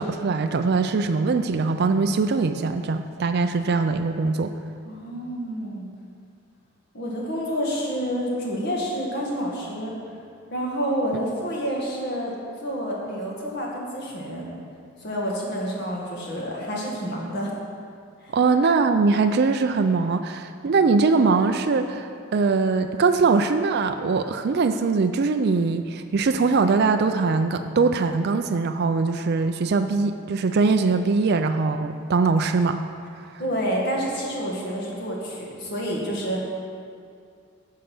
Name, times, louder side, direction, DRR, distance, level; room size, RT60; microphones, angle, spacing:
voice 1, 0.0-4.5 18.3-32.8, right 4 dB, 50° right, 8 dB, 0.4 m, -22 dB
voice 2, 4.8-5.9 6.9-9.9 10.5-12.3 12.6-14.4 15.0-17.5 18.2-18.4 33.4-36.4, equal, 50° left, -3 dB, 1.9 m, -28 dB
10.0 x 6.6 x 6.0 m, 2.3 s
head